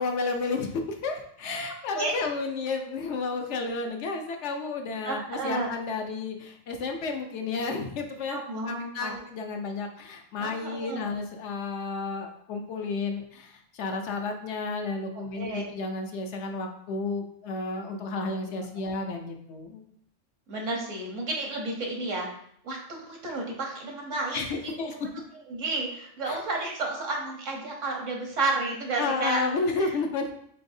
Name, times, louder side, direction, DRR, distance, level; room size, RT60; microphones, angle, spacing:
voice 1, 0.0-19.8 24.3-24.9 26.3-26.4 29.0-30.3, left 3 dB, 70° left, 4 dB, 0.9 m, -32 dB
voice 2, 5.0-5.7 8.3-9.2 10.4-11.1 15.3-15.6 20.5-22.3 22.6-25.1 25.5-29.4 29.8-29.9, right 2 dB, 80° right, 0 dB, 1.3 m, -31 dB
4.5 x 3.9 x 2.6 m, 0.67 s
omnidirectional pair, 1.3 m